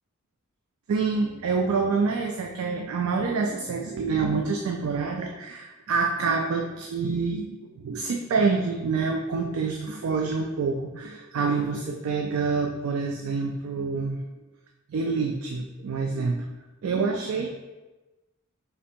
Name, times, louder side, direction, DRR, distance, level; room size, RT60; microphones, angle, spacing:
voice 1, 0.9-14.2 14.9-16.4 16.8-17.5, right 4 dB, 90° right, 2 dB, 0.4 m, -27 dB
3.3 x 2.8 x 4.3 m, 1.1 s
head